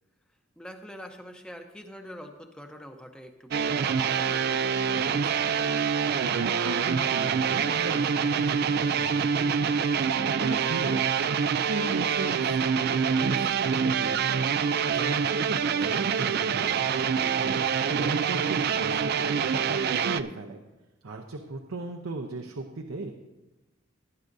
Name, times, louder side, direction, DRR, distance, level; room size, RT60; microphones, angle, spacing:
voice 1, 0.6-5.4 15.6-15.7, equal, 5° left, 4 dB, 0.7 m, -45 dB
sound 1, 3.5-20.2, right 6 dB, 50° right, 0.3 m, -26 dB
voice 2, 6.2-11.0 11.4-12.6 12.9-14.5 14.9-16.9 17.2-20.6 21.0-23.1, right 3 dB, 80° right, 4 dB, 0.8 m, -37 dB
18.0 x 9.6 x 2.7 m, 1.1 s
head